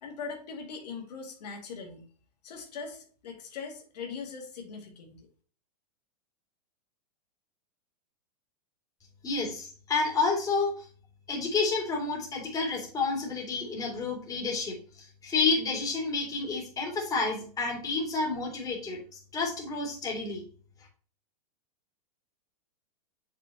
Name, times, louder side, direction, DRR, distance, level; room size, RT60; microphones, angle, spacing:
voice 1, 0.0-2.1 2.4-5.3, left 5 dB, 75° left, 2 dB, 2.4 m, -41 dB
voice 2, 9.2-10.9 11.3-20.4, left 4 dB, 15° left, -1 dB, 2.8 m, -30 dB
7.2 x 6.1 x 3.0 m, 0.43 s
hypercardioid pair, 140°, 21 cm